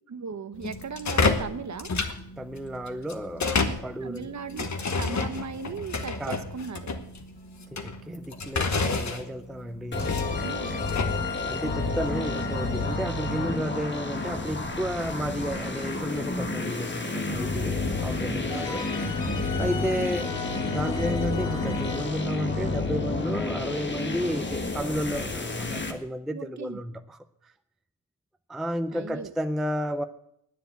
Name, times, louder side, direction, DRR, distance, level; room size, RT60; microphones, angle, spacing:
voice 1, 0.1-1.9 3.7-3.8 4.0-6.8 10.4-10.8 18.5-18.7 26.3-26.8 28.9-29.3, right 5 dB, 40° right, 12 dB, 0.8 m, -37 dB
sound 1, 0.5-11.2, left 4 dB, 40° left, 1.1 m, -30 dB
voice 2, 2.4-4.3 6.2-6.4 7.7-10.1 11.0-18.8 19.6-20.4 20.7-27.5 28.5-30.0, equal, ahead, 8 dB, 0.4 m, -32 dB
sound 2, 9.9-15.9 18.5-24.3, left 3 dB, 75° left, 1.4 m, -37 dB
sound 3, 9.9-25.9, left 3 dB, 25° left, 1.3 m, -30 dB
10.0 x 9.5 x 7.8 m, 0.74 s
wide cardioid pair, 160°, 43 cm